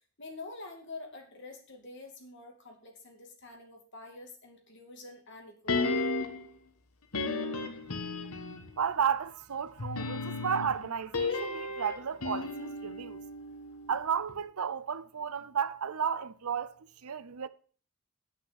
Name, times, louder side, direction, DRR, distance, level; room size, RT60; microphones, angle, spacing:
voice 1, 0.2-6.1, left 3 dB, 55° left, 2.5 m, -47 dB
sound 1, 5.7-6.5 7.1-8.8 9.8-14.0 14.3-14.4, left 3 dB, 85° left, 1.3 m, -34 dB
voice 2, 8.8-13.2 13.9-17.5, right 7 dB, 80° right, 0.6 m, -33 dB
8.8 x 6.2 x 7.0 m
head